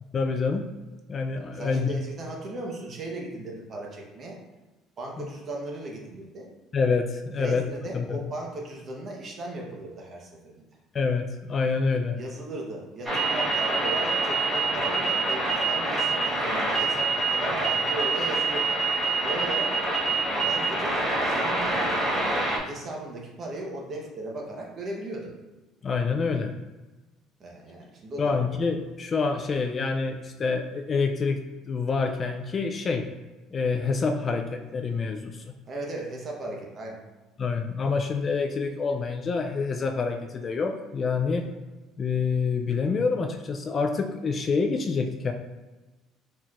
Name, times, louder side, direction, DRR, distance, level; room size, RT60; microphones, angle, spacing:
voice 1, 0.1-0.7 1.1-1.9 5.2-5.3 6.7-7.7 7.9-8.2 10.9-12.2 25.8-26.5 28.2-33.1 33.5-35.5 37.4-41.5 42.0-45.3, left 4 dB, 30° left, 5 dB, 0.3 m, -27 dB
voice 2, 1.5-4.4 5.0-6.5 7.3-10.6 12.1-18.8 19.2-19.8 20.3-21.7 22.1-25.3 27.4-28.4 35.7-37.0 41.2-41.5, right 2 dB, 35° right, -1 dB, 1.0 m, -37 dB
sound 1, 13.0-22.6, right 3 dB, 15° right, 1.4 m, -26 dB
4.4 x 4.2 x 2.5 m, 1.1 s
cardioid pair, 145°, 0 cm